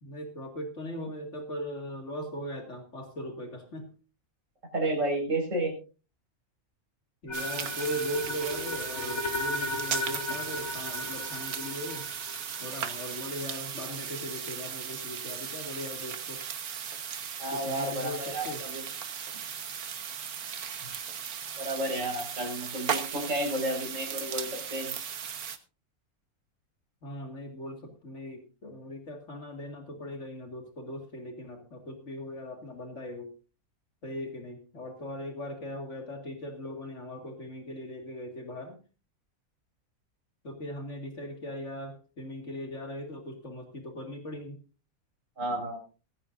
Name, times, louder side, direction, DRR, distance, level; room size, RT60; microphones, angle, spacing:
voice 1, 0.0-3.9 7.2-12.1 12.6-16.4 17.5-18.6 20.8-20.9 27.0-33.3 34.0-38.8 40.4-44.6, equal, 55° left, 4 dB, 2.4 m, -39 dB
voice 2, 4.7-5.7 17.4-18.8 21.6-24.9 45.4-45.8, right 1 dB, 60° right, 0 dB, 5.5 m, -31 dB
sound 1, 7.3-13.4, left 2 dB, 70° left, 3.2 m, -36 dB
sound 2, 7.3-25.6, right 7 dB, 85° right, 1.7 m, -37 dB
18.0 x 15.0 x 2.6 m, 0.33 s
omnidirectional pair, 1.5 m